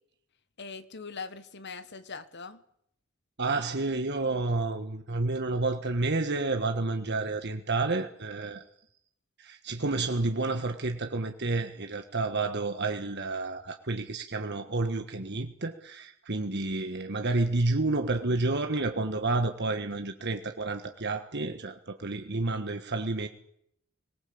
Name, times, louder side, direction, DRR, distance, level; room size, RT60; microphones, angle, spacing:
voice 1, 0.6-2.6, left 4 dB, 55° left, 12 dB, 1.6 m, -41 dB
voice 2, 3.4-8.6 9.4-23.3, right 3 dB, 55° right, 6 dB, 1.5 m, -30 dB
25.0 x 19.0 x 8.7 m, 0.73 s
head